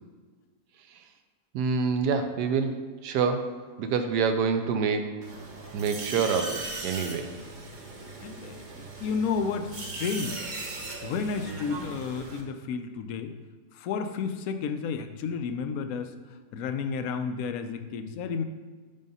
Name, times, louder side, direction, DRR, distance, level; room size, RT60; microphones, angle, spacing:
voice 1, 1.5-5.1 5.7-7.3, right 5 dB, 75° right, 7 dB, 1.1 m, -27 dB
sound 1, 5.2-12.4, right 3 dB, 45° right, 0.6 m, -38 dB
voice 2, 8.2-8.6 9.0-10.4 11.0-13.3 13.7-16.1 16.5-18.4, left 5 dB, 70° left, 8 dB, 0.8 m, -31 dB
5.4 x 5.3 x 5.4 m, 1.4 s
omnidirectional pair, 1.9 m